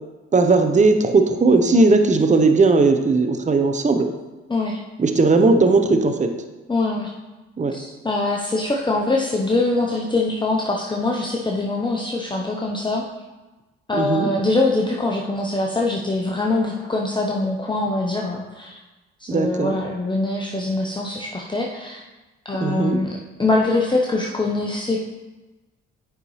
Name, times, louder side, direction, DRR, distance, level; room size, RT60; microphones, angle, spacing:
voice 1, 0.3-4.1 5.0-6.3 7.6-7.8 13.9-14.3 19.3-19.8 22.6-23.0, right 3 dB, 25° right, 6 dB, 0.8 m, -17 dB
voice 2, 6.7-7.1 7.7-13.0 13.9-18.8 19.2-22.1 22.4-23.1 23.4-25.1, left 2 dB, 15° left, -1 dB, 0.8 m, -23 dB
8.6 x 5.3 x 3.1 m, 1.2 s
supercardioid pair, 60°, 30 cm